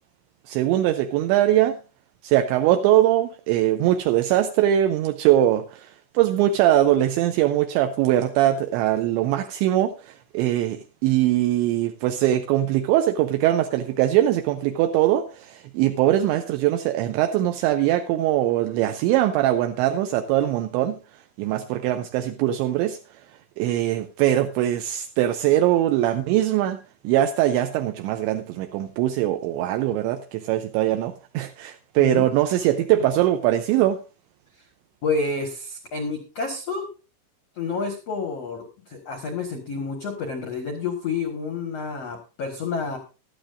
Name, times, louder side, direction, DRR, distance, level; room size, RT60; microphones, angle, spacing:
voice 1, 0.5-1.8 2.2-21.0 21.4-23.0 23.6-26.8 27.0-34.0, right 13 dB, 80° right, 2.8 m, -21 dB
voice 2, 35.0-36.9 37.6-43.0, left 4 dB, 75° left, 1.4 m, -29 dB
16.5 x 12.0 x 2.5 m
omnidirectional pair, 5.6 m